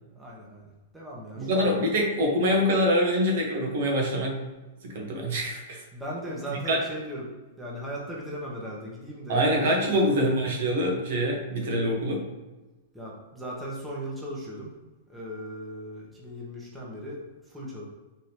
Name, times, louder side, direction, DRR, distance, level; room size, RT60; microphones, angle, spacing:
voice 1, 0.1-1.9 5.9-7.3 7.6-10.1 12.9-14.7 15.1-17.8, right 1 dB, 10° right, -4 dB, 1.1 m, -38 dB
voice 2, 1.4-4.4 4.8-5.8 6.7-6.8 9.3-12.2, equal, 65° right, 0 dB, 1.3 m, -25 dB
4.9 x 3.6 x 3.0 m, 1.1 s
hypercardioid pair, 145°, 0 cm